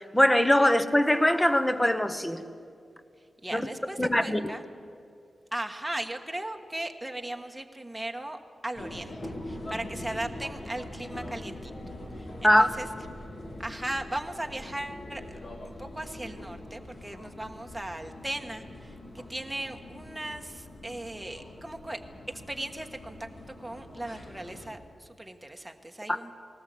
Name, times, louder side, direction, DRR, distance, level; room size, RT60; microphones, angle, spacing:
voice 1, 0.0-2.4 3.5-3.6 4.0-4.4 12.4-12.7, left 1 dB, 10° left, 10 dB, 1.0 m, -22 dB
voice 2, 3.4-4.6 5.5-9.1 9.4-11.7 12.2-12.9 13.6-22.0 22.5-23.3 23.6-26.3, right 1 dB, 5° right, 3 dB, 1.3 m, -37 dB
sound 1, 8.7-24.7, left 1 dB, 45° left, 2.8 m, -43 dB
20.0 x 18.5 x 8.5 m, 2.4 s
wide cardioid pair, 155°, 0 cm